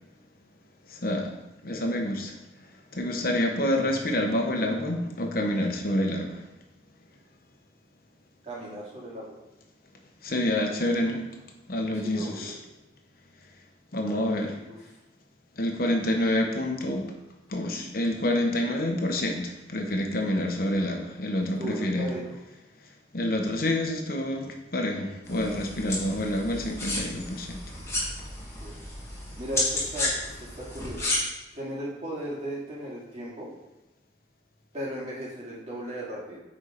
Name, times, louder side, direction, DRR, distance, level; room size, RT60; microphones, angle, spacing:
voice 1, 0.9-1.3 1.6-2.3 2.9-6.4 10.2-11.2 11.7-12.5 13.9-14.5 15.6-17.1 17.5-22.1 23.1-27.6, left 1 dB, 55° left, 2 dB, 1.1 m, -27 dB
voice 2, 8.4-9.3 11.9-12.5 14.0-14.8 21.6-22.4 28.6-28.8 29.4-30.1 30.6-31.1 31.5-33.5 34.7-36.4, right 1 dB, 35° right, -5 dB, 2.4 m, -37 dB
sound 1, 25.2-31.2, left 2 dB, 15° left, 2.2 m, -32 dB
8.8 x 4.3 x 5.1 m, 0.98 s
head